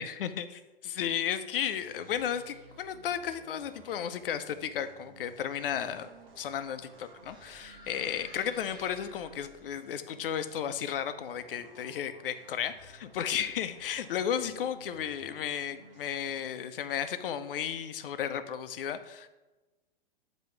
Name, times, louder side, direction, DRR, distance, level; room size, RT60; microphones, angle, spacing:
voice 1, 0.0-6.1 6.4-19.3, left 9 dB, 65° left, 11 dB, 0.6 m, -34 dB
sound 1, 1.1-16.4, right 3 dB, 70° right, 1.0 m, -56 dB
sound 2, 5.3-9.7, right 1 dB, 15° right, 1.3 m, -55 dB
7.5 x 3.0 x 5.6 m, 1.1 s
figure-of-eight pair, 110°, 30 cm